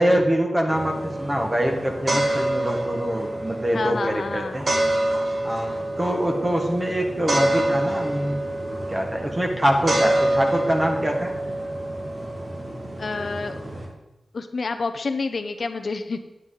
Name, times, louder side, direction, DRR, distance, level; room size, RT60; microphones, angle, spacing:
voice 1, 0.0-4.7 5.4-8.4 8.9-11.3, equal, 15° right, 2 dB, 1.4 m, -24 dB
sound 1, 0.7-13.9, right 1 dB, 40° right, 1.8 m, -27 dB
voice 2, 3.7-4.6 5.7-5.9 13.0-13.6 14.3-16.2, left 4 dB, 55° left, 8 dB, 0.6 m, -29 dB
9.8 x 9.0 x 3.9 m, 0.95 s
wide cardioid pair, 140°, 0 cm